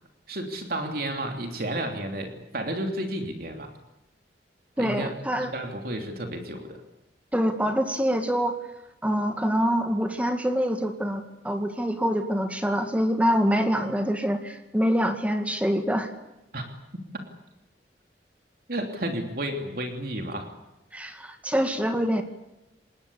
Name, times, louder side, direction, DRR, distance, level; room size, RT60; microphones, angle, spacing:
voice 1, 0.3-3.7 4.8-5.1 5.4-6.8 16.5-16.6 17.1-17.2 18.7-20.5, right 1 dB, 55° right, 4 dB, 3.1 m, -32 dB
voice 2, 4.8-5.5 7.3-8.6 9.0-16.1 20.9-22.2, equal, 10° right, 6 dB, 1.9 m, -25 dB
26.0 x 20.5 x 8.5 m, 0.92 s
head